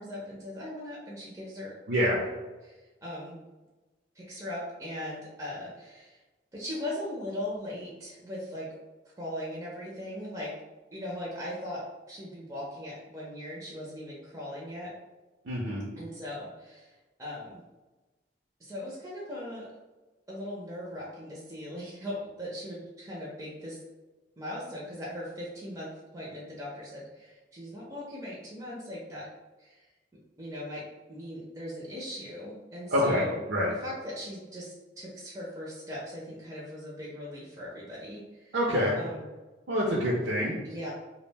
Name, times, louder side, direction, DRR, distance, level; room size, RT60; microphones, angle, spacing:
voice 1, 0.0-1.7 2.6-3.4 4.1-6.2 6.5-8.7 9.2-10.5 10.9-14.9 16.0-17.6 18.6-19.7 20.3-23.8 24.4-29.3 29.6-29.9 30.4-33.4 33.8-38.6 38.9-39.2 40.6-40.9, left 1 dB, 15° right, -6 dB, 0.5 m, -39 dB
voice 2, 1.9-2.2 15.5-15.9 32.9-33.7 38.5-39.0 39.7-40.5, equal, 65° right, -4 dB, 0.5 m, -26 dB
2.3 x 2.0 x 3.2 m, 1.2 s
head